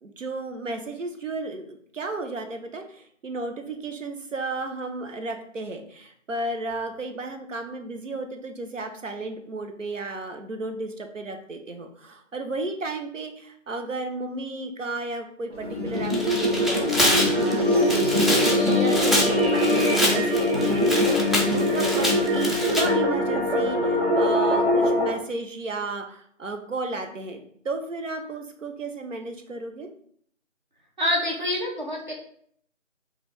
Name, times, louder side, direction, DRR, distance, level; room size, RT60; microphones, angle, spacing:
voice 1, 0.0-29.9, right 2 dB, 75° right, 5 dB, 0.8 m, -33 dB
sound 1, 15.5-25.1, left 1 dB, 50° right, 1.2 m, -22 dB
Tearing, 16.0-22.8, left 1 dB, ahead, 0.4 m, -26 dB
voice 2, 31.0-32.1, left 1 dB, 35° right, -2 dB, 0.8 m, -26 dB
4.5 x 2.5 x 3.4 m, 0.63 s
figure-of-eight pair, 180°, 38 cm